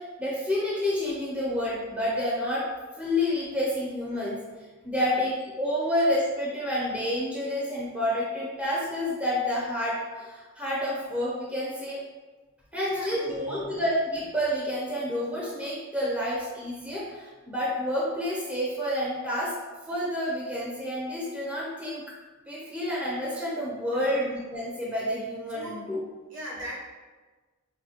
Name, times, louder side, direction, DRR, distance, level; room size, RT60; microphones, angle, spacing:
voice 1, 0.0-2.7 3.0-4.4 4.8-12.0 12.7-19.5 19.9-22.0 22.5-26.0, left 1 dB, 5° right, -7 dB, 0.5 m, -29 dB
voice 2, 12.9-13.7 23.9-24.1 25.5-25.8 26.3-26.8, equal, 60° right, -4 dB, 0.9 m, -40 dB
4.7 x 2.1 x 2.8 m, 1.3 s
head